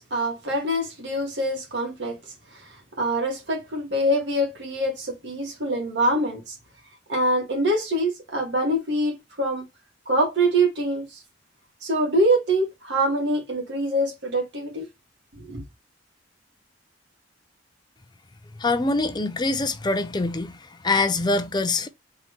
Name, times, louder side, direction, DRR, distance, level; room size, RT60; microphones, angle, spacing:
voice 1, 0.0-2.2 2.6-2.7 3.0-6.5 7.1-9.6 10.1-11.2 11.8-14.9 15.3-15.6, right 1 dB, 70° right, 2.1 m, -24 dB
voice 2, 18.6-20.6 20.8-21.9, left 3 dB, 25° left, 0.5 m, -24 dB
4.2 x 3.7 x 3.0 m
head